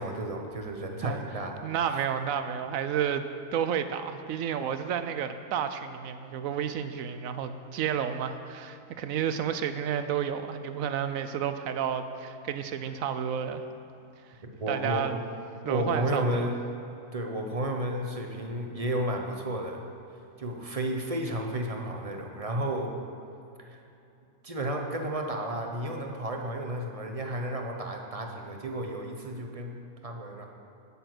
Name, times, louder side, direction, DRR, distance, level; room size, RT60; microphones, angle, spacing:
voice 1, 0.0-1.6 14.4-15.2 15.6-16.6 17.1-19.9 20.4-23.0 23.6-23.8 24.4-30.5, right 1 dB, 30° right, 2 dB, 0.8 m, -32 dB
voice 2, 1.0-13.6 14.7-15.2 15.6-16.2, right 8 dB, 70° right, 9 dB, 1.0 m, -31 dB
9.0 x 8.6 x 6.1 m, 2.7 s
omnidirectional pair, 1.6 m